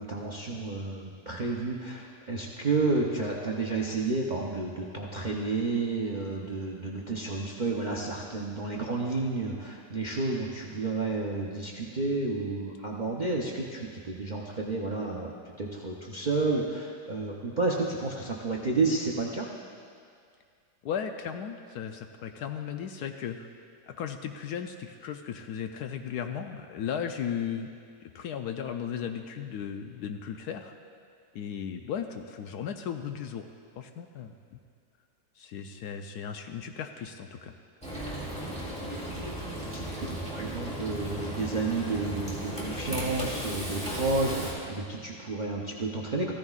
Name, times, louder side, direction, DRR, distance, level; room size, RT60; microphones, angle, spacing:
voice 1, 0.0-19.5 38.9-39.3 39.7-46.3, right 3 dB, 50° right, -2 dB, 0.5 m, -31 dB
voice 2, 20.8-23.5 23.9-27.7 28.1-30.7 31.3-33.5 33.8-34.6 35.4-37.5, left 8 dB, 70° left, 6 dB, 1.0 m, -36 dB
Frying (food), 37.8-44.5, right 1 dB, 5° left, 2.2 m, -35 dB
15.0 x 14.5 x 2.4 m, 2.2 s
omnidirectional pair, 1.9 m